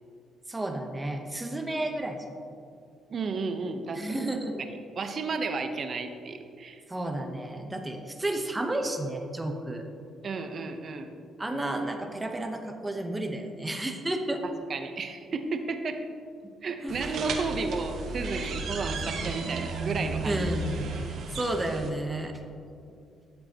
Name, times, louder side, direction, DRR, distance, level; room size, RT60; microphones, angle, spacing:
voice 1, 0.5-2.2 3.9-4.6 6.9-9.9 11.4-14.4 16.8-17.1 20.2-20.7 21.3-22.4, right 1 dB, 15° right, 4 dB, 0.9 m, -32 dB
voice 2, 3.1-4.3 4.6-6.8 10.2-11.1 14.4-16.0 16.6-20.5 21.1-21.2, right 4 dB, 50° right, 7 dB, 0.8 m, -33 dB
sound 1, 16.9-21.9, right 3 dB, 70° right, 1.2 m, -33 dB
13.0 x 7.8 x 2.9 m, 2.5 s
cardioid pair, 90°, 0 cm